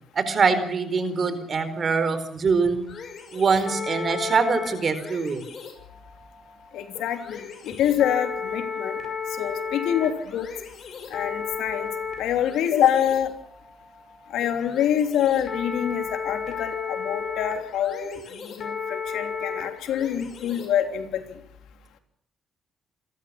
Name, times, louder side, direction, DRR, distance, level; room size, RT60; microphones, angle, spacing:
voice 1, 0.1-2.9 3.3-5.4, right 5 dB, 45° right, 11 dB, 4.4 m, -23 dB
sound 1, 2.9-20.9, left 6 dB, 55° left, 6.4 m, -34 dB
voice 2, 6.7-9.0 9.4-10.5 11.1-11.9 12.2-13.3 14.3-21.2, left 10 dB, 85° left, 6 dB, 3.2 m, -26 dB
28.0 x 14.0 x 7.0 m, 0.76 s
cardioid pair, 90°, 0 cm